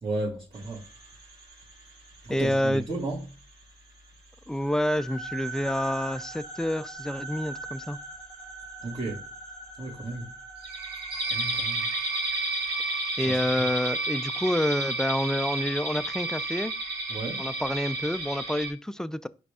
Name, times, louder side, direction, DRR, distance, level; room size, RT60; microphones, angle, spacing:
voice 1, 0.0-0.8 2.2-3.2 8.8-9.2 9.8-10.3 11.3-11.9 13.3-13.7 17.1-17.4, right 2 dB, 35° right, 1.7 m, -33 dB
sound 1, 0.5-2.1 2.6-2.7 3.1-3.2 4.6-18.7, right 2 dB, 75° right, 1.2 m, -33 dB
voice 2, 2.3-2.9 4.5-8.0 13.2-16.7 17.4-19.3, left 1 dB, 5° left, 0.3 m, -28 dB
4.8 x 2.3 x 4.8 m
supercardioid pair, 45°, 17 cm